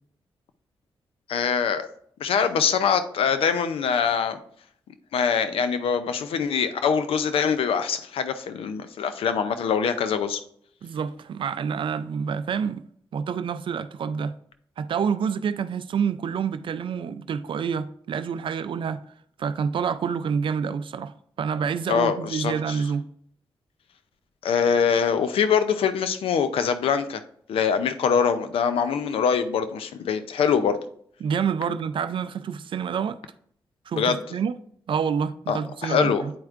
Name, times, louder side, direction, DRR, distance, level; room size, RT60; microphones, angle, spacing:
voice 1, 1.3-1.8 2.2-4.4 5.1-10.4 21.9-22.8 24.4-27.2 27.5-30.8 33.9-34.2 35.5-36.3, left 6 dB, 80° left, 0.6 m, -23 dB
voice 2, 10.8-12.8 13.1-14.4 14.8-19.0 19.4-23.1 31.2-33.2 33.9-34.6 34.9-36.3, right 6 dB, 65° right, 0.4 m, -28 dB
9.4 x 4.4 x 2.4 m
cardioid pair, 60°, 9 cm